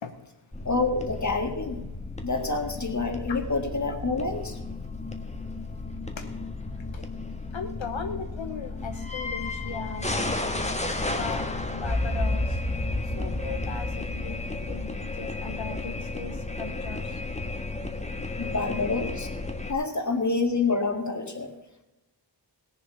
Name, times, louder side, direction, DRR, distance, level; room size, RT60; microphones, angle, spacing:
sound 1, 0.5-19.7, left 2 dB, 15° left, 1.5 m, -32 dB
voice 1, 0.7-1.8 2.2-4.6 18.4-19.3 19.7-21.5, left 3 dB, 40° left, 5 dB, 1.9 m, -27 dB
voice 2, 7.5-10.6 11.0-12.6 13.1-17.2, left 5 dB, 80° left, 6 dB, 1.0 m, -38 dB
18.0 x 7.2 x 5.8 m, 0.98 s
wide cardioid pair, 85°, 45 cm